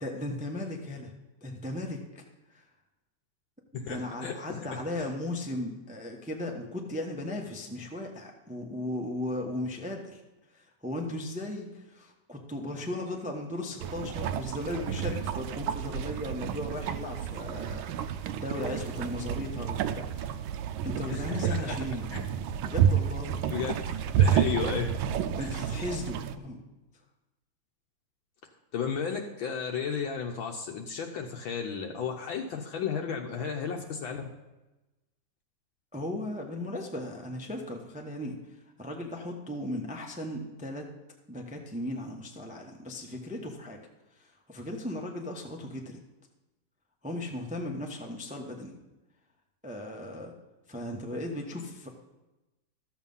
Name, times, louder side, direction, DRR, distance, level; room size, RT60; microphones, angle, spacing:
voice 1, 0.0-1.1 1.4-2.2 2.5-2.6 3.7-10.2 10.5-20.3 20.8-22.1 22.6-23.7 25.4-26.6 35.9-38.4 38.8-40.9 41.3-43.8 44.2-46.0 47.0-48.7 49.6-50.3 50.7-51.9, left 1 dB, 10° right, 2 dB, 0.4 m, -36 dB
voice 2, 3.8-4.8 21.1-21.8 22.1-22.2 23.5-23.7 24.2-24.9 25.4-25.5 28.7-34.2, left 6 dB, 70° left, 3 dB, 1.5 m, -33 dB
sound 1, 13.8-26.4, right 9 dB, 75° right, 1.3 m, -30 dB
13.0 x 7.4 x 5.5 m, 1.0 s
omnidirectional pair, 2.4 m